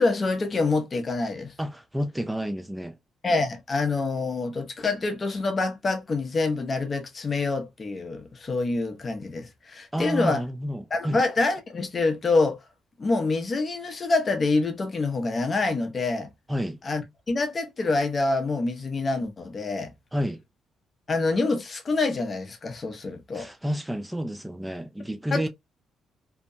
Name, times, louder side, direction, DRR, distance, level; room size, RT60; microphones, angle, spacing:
voice 1, 0.0-1.5 3.2-10.4 10.9-12.6 13.0-16.3 16.8-19.9 21.1-23.5 25.3-25.5, left 3 dB, 35° left, 0.6 m, -26 dB
voice 2, 1.6-3.0 9.9-11.2 16.5-16.8 20.1-20.4 23.3-25.5, equal, 10° right, 0.3 m, -30 dB
2.7 x 2.1 x 2.5 m
cardioid pair, 90°, 0 cm